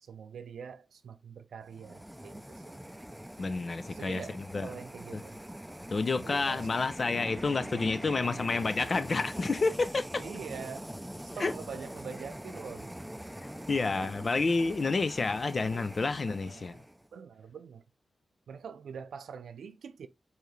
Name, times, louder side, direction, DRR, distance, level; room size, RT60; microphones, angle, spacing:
voice 1, 0.0-2.8 3.9-5.4 6.2-6.7 10.2-10.9 11.3-12.9 13.9-14.1 15.6-15.9 16.3-16.9 17.1-17.8 18.5-20.1, right 6 dB, 80° right, 0.5 m, -44 dB
sound 1, 1.7-17.1, equal, 5° right, 0.5 m, -43 dB
voice 2, 3.4-4.7 5.1-5.2 5.9-10.2 11.4-11.5 13.7-16.8, left 3 dB, 55° left, 0.6 m, -29 dB
4.7 x 2.8 x 3.1 m
supercardioid pair, 40°, 0 cm